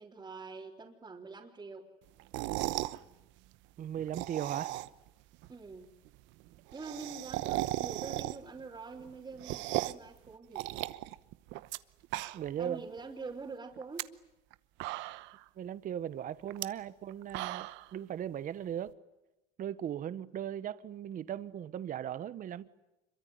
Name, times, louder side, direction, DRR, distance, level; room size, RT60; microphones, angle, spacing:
voice 1, 0.0-1.8 5.5-5.9 6.7-10.9 12.6-14.1, right 4 dB, 20° right, 3.7 m, -45 dB
sound 1, 2.2-3.0 4.0-5.1 5.4-5.5 5.7-5.8 6.0-6.1 6.4-8.6 9.0-10.1 10.5-11.8 12.0-12.6 13.0-13.1 13.8-14.0 14.5-14.6 14.8-15.4 16.5-16.6 17.1-17.9, right 18 dB, 75° right, 0.9 m, -36 dB
voice 2, 3.8-4.8 12.3-12.9 15.6-18.9 19.6-22.7, right 10 dB, 45° right, 1.1 m, -38 dB
26.5 x 23.5 x 9.4 m
supercardioid pair, 110°, 19 cm